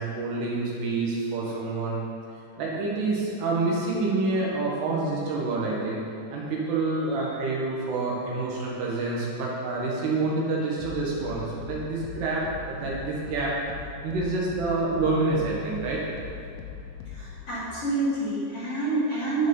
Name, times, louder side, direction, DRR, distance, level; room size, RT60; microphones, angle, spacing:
voice 1, 0.0-2.0 2.6-6.0 6.3-13.5 14.0-16.0, right 3 dB, 70° right, -4 dB, 3.2 m, -27 dB
sound 1, 8.9-17.4, left 7 dB, 90° left, 3.2 m, -41 dB
voice 2, 17.1-19.5, right 2 dB, 40° left, -11 dB, 2.6 m, -27 dB
13.5 x 4.7 x 5.4 m, 2.6 s
omnidirectional pair, 5.2 m